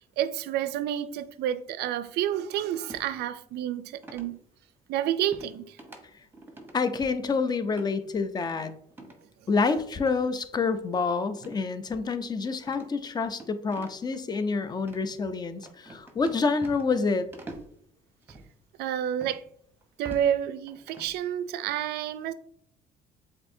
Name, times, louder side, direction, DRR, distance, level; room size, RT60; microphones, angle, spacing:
voice 1, 0.2-4.4 4.9-5.8 18.8-19.4 20.0-22.3, right 11 dB, 75° right, 0.4 m, -29 dB
sound 1, 2.9-3.1 4.0-4.3 5.3-5.5 5.8-6.0 6.3-6.7 7.7-7.9 8.9-9.2 10.0-10.1 11.4-11.6 11.9-12.0 12.6-14.2 14.8-15.0 15.6-17.0 17.3-17.7 18.2-18.5 19.2-19.4 19.8-20.3 20.7-21.1, right 2 dB, 10° right, 0.8 m, -45 dB
voice 2, 6.7-8.7 9.5-17.3, left 4 dB, 25° left, 0.4 m, -27 dB
7.4 x 2.6 x 2.6 m
cardioid pair, 110°, 17 cm